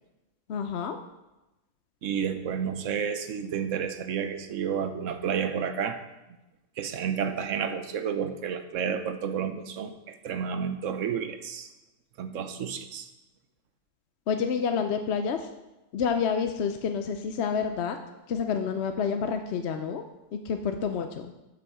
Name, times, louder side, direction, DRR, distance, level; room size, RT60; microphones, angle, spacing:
voice 1, 0.5-1.0 14.3-15.5 15.9-18.0 18.3-20.0 20.3-21.3, left 6 dB, 65° left, 6 dB, 0.9 m, -28 dB
voice 2, 2.0-6.0 6.8-11.7 12.2-13.1, right 7 dB, 80° right, 9 dB, 1.1 m, -31 dB
11.5 x 6.0 x 4.9 m, 0.99 s
omnidirectional pair, 1.3 m